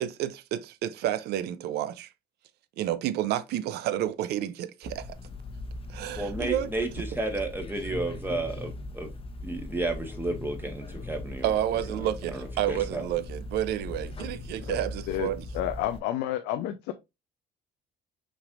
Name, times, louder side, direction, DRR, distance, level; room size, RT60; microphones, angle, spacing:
voice 1, 0.0-2.1 2.8-5.1 5.9-6.7 11.4-15.4, right 12 dB, 75° right, 0.6 m, -30 dB
sound 1, 4.8-16.0, left 2 dB, 35° left, 0.9 m, -39 dB
voice 2, 6.1-9.1 9.4-11.5 11.9-12.0 12.3-13.0, right 2 dB, 10° right, 1.1 m, -32 dB
voice 3, 15.1-16.9, left 12 dB, 90° left, 0.5 m, -31 dB
6.0 x 3.4 x 2.5 m
cardioid pair, 110°, 17 cm